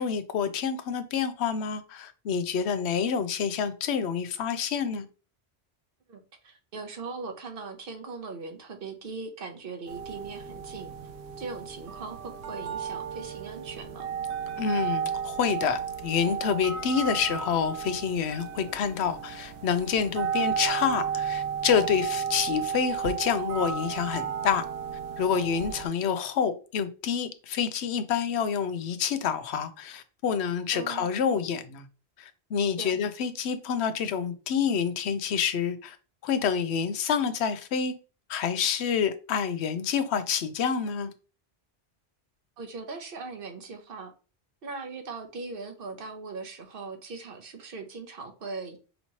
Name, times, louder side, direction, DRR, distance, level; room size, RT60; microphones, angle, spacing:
voice 1, 0.0-5.0 14.6-24.6 25.2-31.8 32.2-36.0 36.2-37.9 38.3-41.1, left 7 dB, 85° left, 0.9 m, -28 dB
voice 2, 6.1-10.9 11.4-14.1 30.7-31.1 32.8-33.0 42.6-44.1 44.6-48.8, right 4 dB, 60° right, 0.9 m, -40 dB
sound 1, 9.9-25.9, right 7 dB, 85° right, 1.0 m, -33 dB
5.3 x 2.9 x 2.8 m
omnidirectional pair, 1.1 m